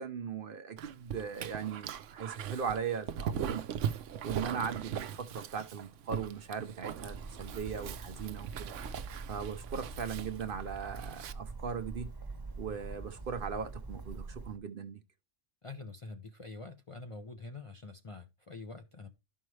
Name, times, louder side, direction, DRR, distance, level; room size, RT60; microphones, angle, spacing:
voice 1, 0.0-3.6 4.2-8.7 9.3-12.1 12.6-15.0, right 6 dB, 55° right, 0.8 m, -38 dB
Dog, 0.8-11.3, right 8 dB, 85° right, 1.0 m, -40 dB
Bird, 7.0-14.6, right 3 dB, 20° right, 1.0 m, -44 dB
voice 2, 15.6-19.1, left 3 dB, 40° left, 0.5 m, -46 dB
12.0 x 5.5 x 3.2 m
omnidirectional pair, 1.2 m